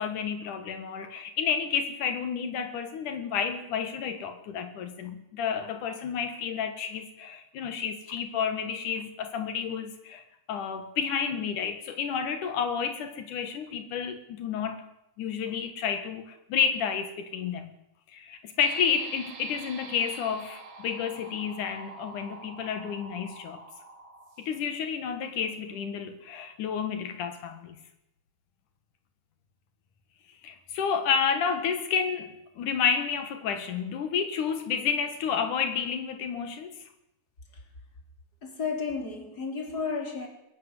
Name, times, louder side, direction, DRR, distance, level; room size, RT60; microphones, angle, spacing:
voice 1, 0.0-10.2 10.5-14.9 15.2-17.7 18.1-23.6 24.4-27.8 30.4-36.9, left 7 dB, 85° left, 8 dB, 3.2 m, -30 dB
sound 1, 18.6-24.7, right 3 dB, 70° right, 4.1 m, -46 dB
voice 2, 38.4-40.3, left 5 dB, 30° left, 3 dB, 4.2 m, -32 dB
22.5 x 14.0 x 9.8 m, 0.84 s
omnidirectional pair, 3.5 m